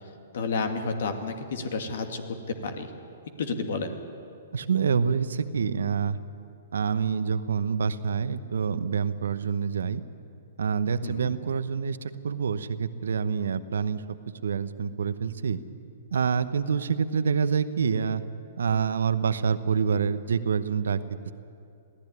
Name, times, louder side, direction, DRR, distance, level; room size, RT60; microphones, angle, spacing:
voice 1, 0.3-2.2 2.5-2.9 3.4-4.0 11.0-11.3, left 4 dB, 65° left, 7 dB, 2.3 m, -30 dB
voice 2, 4.5-6.2 6.7-10.0 10.6-14.0 14.4-15.6 16.1-18.2 18.6-21.0, right 6 dB, 75° right, 13 dB, 1.0 m, -26 dB
22.5 x 15.5 x 9.8 m, 2.6 s
hypercardioid pair, 120°, 0 cm